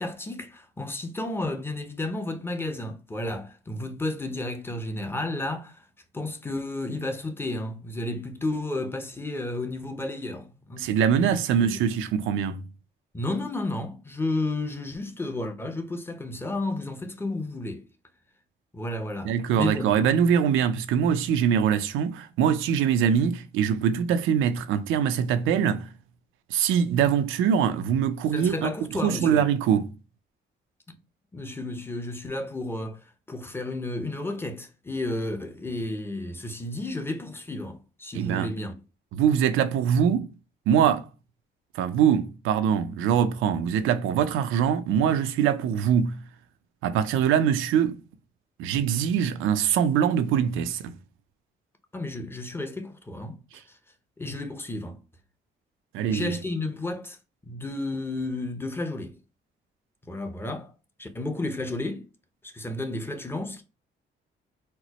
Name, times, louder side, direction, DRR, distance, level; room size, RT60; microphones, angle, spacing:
voice 1, 0.0-5.9 6.1-10.9 11.1-11.4 11.6-11.8 13.1-17.9 18.7-19.9 28.3-29.5 30.9-31.0 31.3-38.7 51.9-53.4 53.7-53.8 54.2-55.0 56.1-57.2 57.5-59.2 60.1-60.7 61.0-62.1 62.4-63.6, left 2 dB, 10° left, 0.7 m, -32 dB
voice 2, 10.8-12.7 19.2-25.9 26.5-28.7 29.0-29.9 38.1-38.5 39.1-40.3 40.7-41.0 41.7-46.2 46.8-48.0 48.6-50.9 55.9-56.4, right 8 dB, 90° right, 0.5 m, -23 dB
4.3 x 2.0 x 2.9 m
cardioid pair, 90°, 20 cm